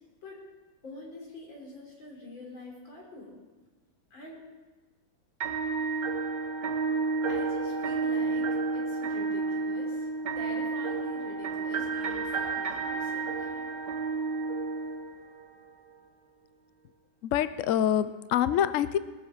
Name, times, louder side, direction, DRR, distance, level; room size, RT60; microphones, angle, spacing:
voice 1, 0.8-3.4 4.1-4.4 7.2-10.1 10.4-13.7, left 2 dB, 70° left, -2 dB, 4.5 m, -45 dB
sound 1, 5.4-15.4, right 4 dB, 60° right, 2.0 m, -31 dB
voice 2, 17.2-19.0, left 10 dB, 90° left, 14 dB, 0.6 m, -26 dB
21.0 x 7.8 x 7.3 m, 1.3 s
omnidirectional pair, 2.2 m